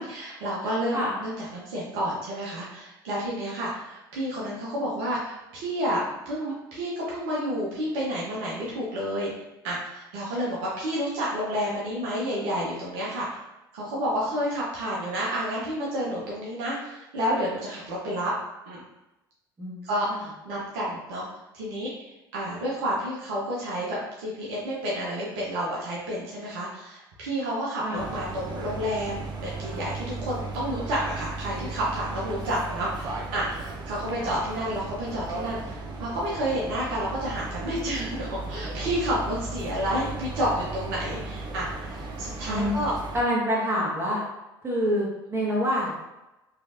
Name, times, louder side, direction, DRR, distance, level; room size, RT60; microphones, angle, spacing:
voice 1, 0.0-9.3 9.6-13.3 13.7-18.3 18.7-18.8 19.8-21.3 21.5-42.9, equal, 65° right, -6 dB, 0.9 m, -30 dB
voice 2, 19.6-20.2 27.8-28.1 34.2-34.4 42.5-42.9 43.1-44.2 44.6-45.9, equal, 20° right, -5 dB, 1.4 m, -27 dB
sound 1, 28.0-43.2, right 3 dB, 35° right, 0.5 m, -36 dB
3.1 x 3.1 x 2.5 m, 0.98 s
figure-of-eight pair, 60°, 12 cm